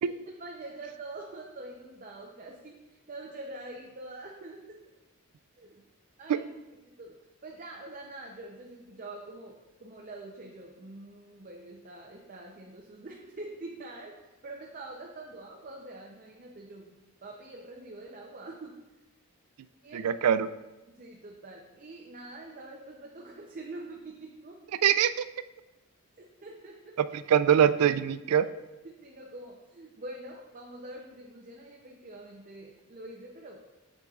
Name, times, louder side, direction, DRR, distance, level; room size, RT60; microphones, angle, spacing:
voice 1, 0.0-4.6 5.6-5.8 6.2-6.5 6.8-7.2 7.4-16.9 17.2-18.8 19.8-20.1 20.9-24.6 26.4-26.9 28.8-33.6, right 2 dB, 40° right, 0 dB, 0.6 m, -45 dB
voice 2, 19.9-20.5 24.8-25.3 27.0-28.4, right 9 dB, 90° right, 14 dB, 0.3 m, -23 dB
7.5 x 6.4 x 2.4 m, 1.0 s
head